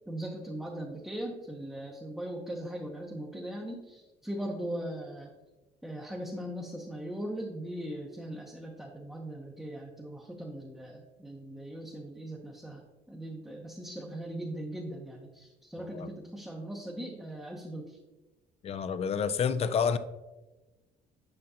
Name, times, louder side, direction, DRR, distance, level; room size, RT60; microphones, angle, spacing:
voice 1, 0.1-5.3 5.8-18.0, right 1 dB, ahead, 0.8 m, -39 dB
voice 2, 18.6-20.0, left 6 dB, 35° left, 0.4 m, -28 dB
7.8 x 5.6 x 2.8 m
cardioid pair, 110°, 17 cm